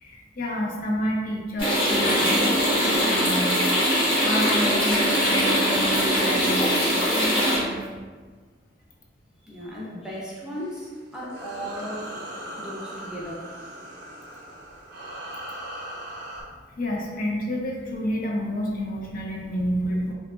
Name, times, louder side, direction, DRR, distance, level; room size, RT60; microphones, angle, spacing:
voice 1, 0.0-7.8 16.7-20.1, equal, 50° left, -2 dB, 0.5 m, -29 dB
sound 1, 1.6-7.6, equal, 30° left, 0.9 m, -22 dB
voice 2, 9.4-12.1 12.6-13.5, equal, 5° right, -6 dB, 0.5 m, -36 dB
sound 2, 10.4-16.4, right 1 dB, 60° right, 0.5 m, -39 dB
2.7 x 2.3 x 2.4 m, 1.4 s
head